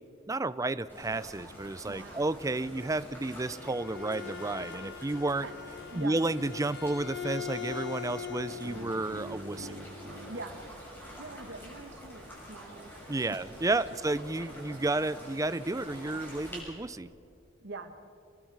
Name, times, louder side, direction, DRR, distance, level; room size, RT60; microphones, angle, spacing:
voice 1, 0.3-5.5 5.9-9.7 13.1-17.1, right 2 dB, 15° right, 15 dB, 0.5 m, -32 dB
sound 1, 0.9-16.6, equal, 10° left, 7.0 m, -47 dB
voice 2, 1.8-2.2 5.4-5.6 5.9-6.2 10.3-10.6 11.2-12.9 17.6-17.9, right 3 dB, 60° right, 6 dB, 1.3 m, -43 dB
Bowed string instrument, 3.4-8.9, left 8 dB, 60° left, 1.0 m, -41 dB
sound 2, 8.5-11.6, equal, 90° right, 2.7 m, -46 dB
27.0 x 21.0 x 4.7 m, 2.5 s
head